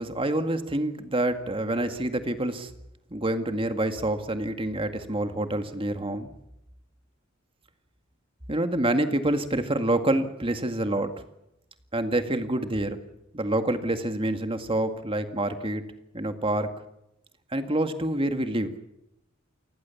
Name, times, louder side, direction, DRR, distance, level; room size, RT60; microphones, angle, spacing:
voice 1, 0.0-2.7 3.1-6.3 8.5-11.1 11.9-13.0 13.3-15.8 16.1-16.7 17.5-18.7, right 1 dB, 25° right, 8 dB, 2.0 m, -27 dB
29.0 x 20.0 x 7.2 m, 0.85 s
head